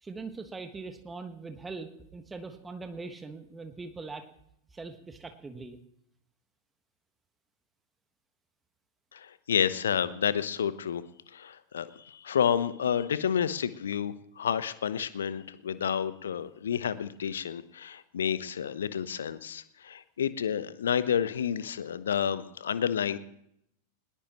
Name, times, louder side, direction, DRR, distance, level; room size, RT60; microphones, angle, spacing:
voice 1, 0.0-4.3 4.7-5.8, right 3 dB, 10° right, 7 dB, 1.5 m, -41 dB
voice 2, 9.1-11.0 11.3-23.2, left 8 dB, 65° left, 15 dB, 0.9 m, -30 dB
20.5 x 18.5 x 3.1 m, 0.74 s
figure-of-eight pair, 90°, 0 cm